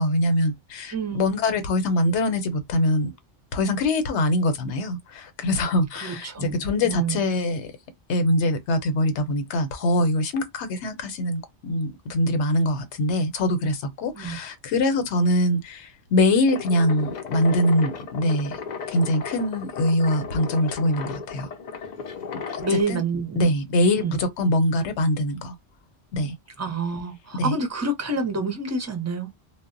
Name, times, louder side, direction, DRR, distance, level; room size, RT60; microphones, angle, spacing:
voice 1, 0.0-3.1 3.5-7.7 8.1-18.6 18.9-21.5 22.5-22.6 22.9-23.0 23.4-25.5 26.1-26.3 27.4-27.5, left 1 dB, 90° left, 1.0 m, -23 dB
voice 2, 0.9-1.3 6.0-6.6 6.8-7.2 14.1-14.4 22.6-23.5 24.0-24.2 26.6-29.3, right 3 dB, 20° right, 0.4 m, -28 dB
sound 1, 16.5-22.8, left 6 dB, 55° left, 0.5 m, -35 dB
2.1 x 2.0 x 3.7 m
omnidirectional pair, 1.1 m